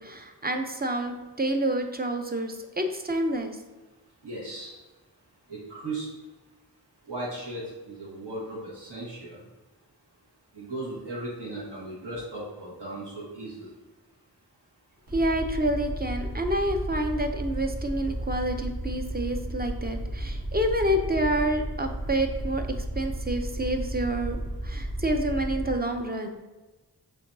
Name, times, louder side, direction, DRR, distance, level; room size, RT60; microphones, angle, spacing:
voice 1, 0.0-3.6 15.1-22.7 22.9-26.3, right 1 dB, 25° right, 5 dB, 0.4 m, -28 dB
voice 2, 4.2-4.8 5.5-6.1 7.1-9.4 10.5-13.7, right 2 dB, 80° right, -6 dB, 1.4 m, -37 dB
Aircraft, 15.1-25.7, right 1 dB, 60° right, 1.2 m, -33 dB
6.7 x 2.6 x 2.6 m, 1.2 s
wide cardioid pair, 55°, 40 cm